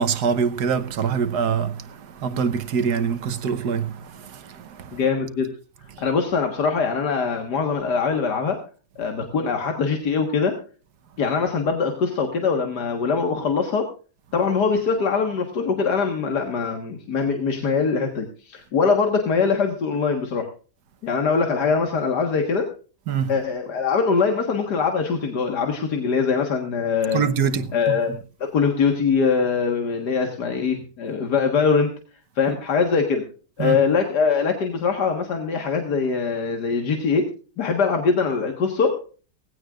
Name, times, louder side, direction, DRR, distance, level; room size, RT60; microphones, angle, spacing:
voice 1, 0.0-5.0 23.1-23.3 27.1-27.7 33.6-33.8, right 6 dB, 85° right, 1.6 m, -24 dB
voice 2, 4.9-5.5 6.0-8.6 9.0-10.6 11.2-13.9 14.3-20.5 21.0-22.7 23.3-27.2 27.7-31.9 32.4-33.2 33.6-39.1, left 5 dB, 90° left, 2.1 m, -22 dB
18.5 x 16.0 x 2.4 m
omnidirectional pair, 1.7 m